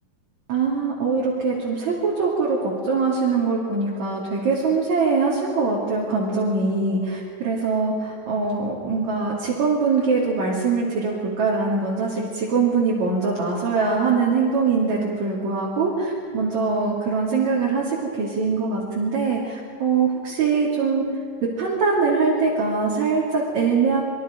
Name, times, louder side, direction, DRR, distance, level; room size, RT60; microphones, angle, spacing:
voice 1, 0.5-21.1 21.4-24.0, right 4 dB, 55° right, -6 dB, 4.1 m, -22 dB
27.0 x 22.5 x 5.3 m, 2.1 s
omnidirectional pair, 4.1 m